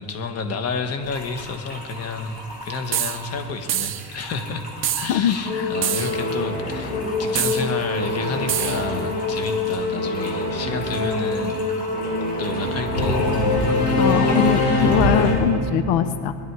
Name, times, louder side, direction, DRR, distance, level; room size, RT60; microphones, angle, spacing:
voice 1, 0.0-4.7 4.9-11.6 12.4-13.2, left 4 dB, 40° left, 6 dB, 1.4 m, -30 dB
sound 1, 1.0-15.4, left 1 dB, 20° left, 3.4 m, -39 dB
sound 2, 2.9-3.2 3.7-4.1 4.8-5.1 5.8-6.2 7.4-7.6 8.5-8.8, right 11 dB, 35° right, 0.5 m, -25 dB
voice 2, 5.1-5.7 14.0-16.3, left 9 dB, 90° left, 11 dB, 0.7 m, -22 dB
Singing / Musical instrument, 5.4-15.3, left 2 dB, 60° left, 3.9 m, -23 dB
21.5 x 11.5 x 4.7 m, 2.5 s
cardioid pair, 150°, 38 cm